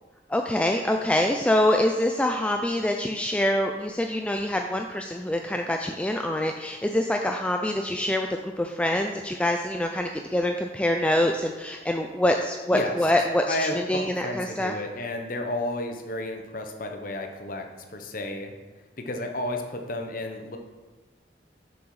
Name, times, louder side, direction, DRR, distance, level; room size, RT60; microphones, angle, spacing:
voice 1, 0.3-14.8, left 1 dB, 5° left, 3 dB, 0.3 m, -25 dB
voice 2, 13.5-18.5 19.0-20.6, left 1 dB, 50° left, 4 dB, 0.9 m, -32 dB
7.0 x 6.3 x 4.8 m, 1.3 s
head